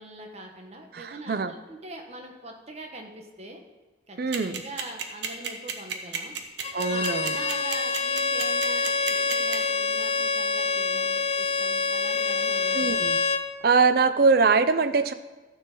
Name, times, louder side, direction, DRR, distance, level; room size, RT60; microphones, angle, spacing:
voice 1, 0.0-3.6 4.1-4.2 4.5-6.4 6.9-13.0, right 2 dB, 35° right, 3 dB, 1.3 m, -42 dB
voice 2, 0.9-1.5 4.2-4.6 6.7-7.4 12.7-13.2 13.6-15.1, right 4 dB, 55° right, 12 dB, 0.5 m, -22 dB
sound 1, 4.3-9.5, right 7 dB, 75° right, 1.2 m, -31 dB
Bowed string instrument, 6.6-13.5, left 4 dB, 35° left, 0.7 m, -26 dB
13.5 x 4.6 x 7.2 m, 1.2 s
head